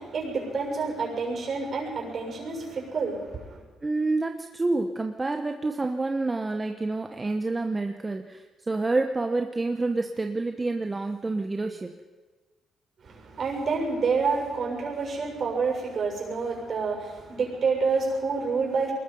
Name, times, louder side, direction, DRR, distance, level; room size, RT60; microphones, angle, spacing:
voice 1, 0.0-3.6 13.0-18.9, right 4 dB, 50° right, 0 dB, 6.9 m, -28 dB
voice 2, 3.8-11.9, right 3 dB, 20° right, 5 dB, 1.1 m, -28 dB
23.5 x 20.5 x 5.5 m, 1.3 s
cardioid pair, 90°, 0 cm